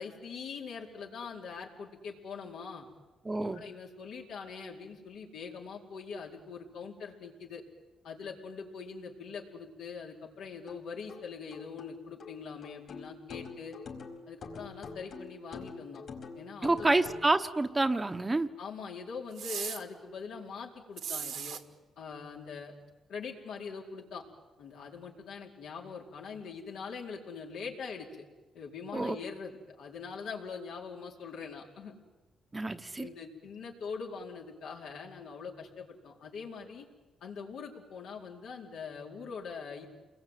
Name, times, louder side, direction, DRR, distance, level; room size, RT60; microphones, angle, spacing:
voice 1, 0.0-2.9 3.5-7.6 8.0-13.8 14.3-16.0 16.3-16.9 18.6-21.6 22.0-22.7 23.1-24.2 24.6-28.1 28.5-31.9 33.0-36.9 37.2-39.9, left 5 dB, 80° left, -1 dB, 4.5 m, -43 dB
voice 2, 3.2-3.7 16.6-18.5 28.9-29.2 32.5-33.1, right 2 dB, 15° right, 8 dB, 1.1 m, -28 dB
sound 1, 10.7-17.3, left 4 dB, 55° left, 4.7 m, -46 dB
sound 2, 19.4-19.8 21.0-21.6, right 8 dB, 70° right, 1.7 m, -37 dB
29.0 x 21.5 x 9.3 m, 1.2 s
cardioid pair, 105°, 0 cm